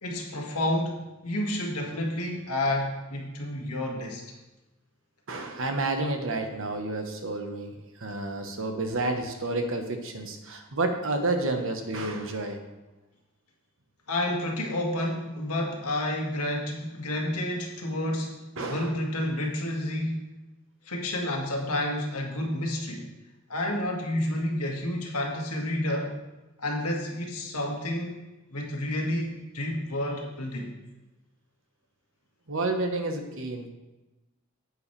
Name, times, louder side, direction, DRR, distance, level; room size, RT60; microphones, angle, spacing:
voice 1, 0.0-4.2 14.1-20.3 20.9-23.1 23.5-26.1 26.6-28.2 28.5-30.7, left 1 dB, 85° left, 0 dB, 1.8 m, -30 dB
voice 2, 5.3-12.6 18.6-19.0 32.5-33.7, right 2 dB, 60° right, 5 dB, 1.1 m, -30 dB
10.0 x 8.1 x 3.3 m, 1.1 s
head